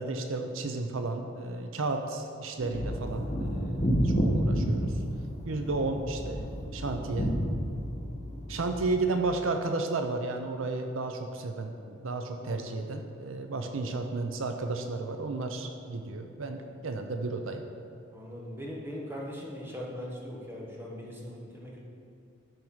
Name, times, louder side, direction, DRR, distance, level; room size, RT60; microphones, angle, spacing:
voice 1, 0.0-4.9 5.4-6.5 6.7-7.3 8.5-17.6, right 3 dB, 70° right, 5 dB, 0.6 m, -33 dB
sound 1, 2.6-9.0, equal, 30° left, 1.3 m, -30 dB
voice 2, 18.1-21.8, equal, 10° right, -3 dB, 1.4 m, -40 dB
12.5 x 4.6 x 5.6 m, 2.4 s
head